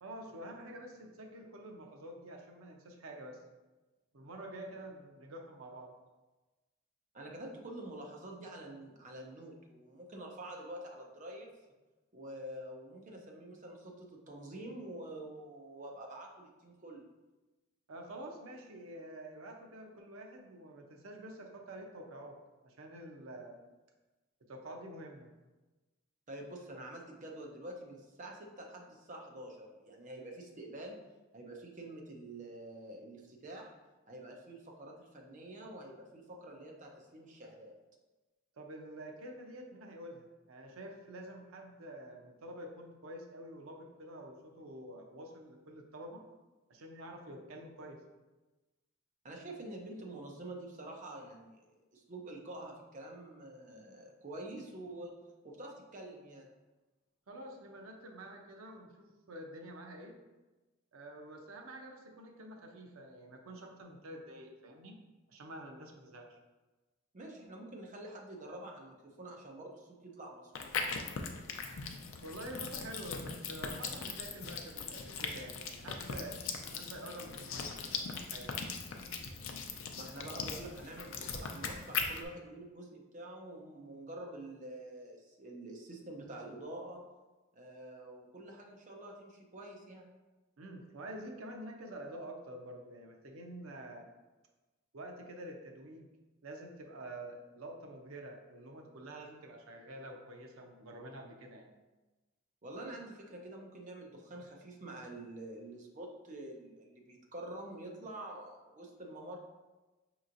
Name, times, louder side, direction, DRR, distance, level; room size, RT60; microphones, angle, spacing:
voice 1, 0.0-3.4 4.1-5.9 17.9-23.6 24.5-25.3 38.6-46.3 46.7-48.0 57.3-60.2 60.9-65.0 65.3-66.4 72.2-76.4 76.7-78.5 90.6-94.1 94.9-96.1 96.4-101.7, right 1 dB, 80° right, 2 dB, 0.6 m, -48 dB
voice 2, 7.1-11.5 12.1-17.1 26.3-31.0 31.3-33.7 34.1-37.7 49.2-55.1 55.4-56.5 67.1-71.0 79.9-87.0 87.5-90.1 102.6-109.4, right 1 dB, 35° right, 1 dB, 0.6 m, -47 dB
sound 1, 70.5-82.2, left 5 dB, 70° left, 0.4 m, -40 dB
5.4 x 2.9 x 2.5 m, 1.2 s
head